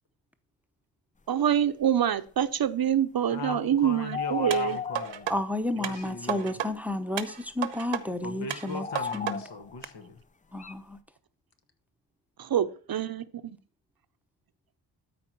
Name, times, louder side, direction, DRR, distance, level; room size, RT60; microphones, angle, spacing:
voice 1, 1.3-4.8 12.4-13.6, right 9 dB, 55° right, 0.8 m, -26 dB
voice 2, 3.3-5.3 5.8-6.5 8.2-10.2, left 3 dB, 65° left, 1.8 m, -39 dB
sound 1, 3.5-3.7 4.1-5.4 6.0-6.1 6.7-7.3 8.5-9.9 10.6-10.7, left 6 dB, 20° left, 0.4 m, -35 dB
sound 2, 4.5-5.4 5.8-6.7 7.2-8.0 8.5-9.4 9.8-9.9, right 10 dB, 85° right, 1.1 m, -33 dB
voice 3, 5.3-8.9 9.1-9.4 10.5-11.0, left 1 dB, 5° right, 0.9 m, -31 dB
13.0 x 4.9 x 4.5 m
cardioid pair, 90°, 45 cm